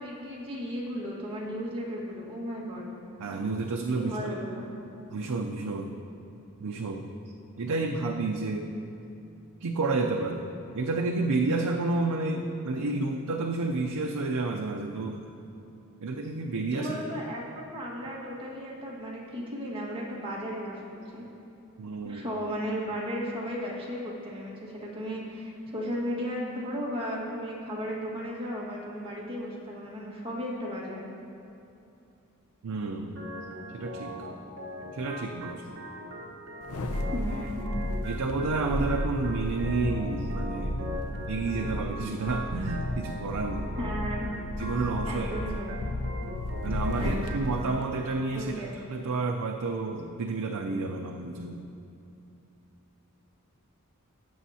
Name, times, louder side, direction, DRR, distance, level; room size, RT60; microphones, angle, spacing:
voice 1, 0.0-2.9 3.9-4.7 16.7-21.3 22.0-31.0 37.1-37.6 43.8-44.3 45.1-45.8 47.0-47.3 48.3-48.8, equal, 25° right, -5 dB, 1.7 m, -35 dB
voice 2, 3.2-4.4 5.1-6.0 6.6-7.1 7.6-8.7 9.6-10.4 10.7-15.2 16.0-17.0 21.8-22.2 32.6-33.2 33.7-34.3 34.9-35.7 38.0-40.9 41.3-43.8 44.6-45.5 46.6-51.7, right 3 dB, 80° right, 2 dB, 0.5 m, -30 dB
Organ, 33.2-48.2, equal, 55° right, 1.2 m, -41 dB
sound 1, 36.6-47.3 47.7-47.8, left 1 dB, 70° left, 0.6 m, -33 dB
16.5 x 7.1 x 2.8 m, 2.8 s
head